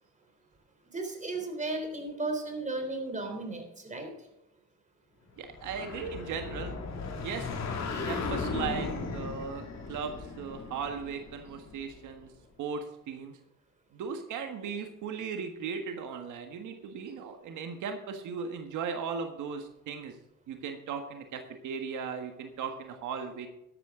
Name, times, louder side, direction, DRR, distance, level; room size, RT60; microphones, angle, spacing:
voice 1, 0.9-4.1, right 2 dB, 25° right, 4 dB, 3.8 m, -35 dB
voice 2, 5.4-6.7 7.2-7.5 7.9-12.3 12.6-13.4 13.9-20.2 20.5-23.5, right 6 dB, 80° right, 5 dB, 1.5 m, -37 dB
sound 1, 5.5-12.1, left 3 dB, 60° left, 2.6 m, -36 dB
13.0 x 12.0 x 3.8 m, 0.87 s
cardioid pair, 90°, 30 cm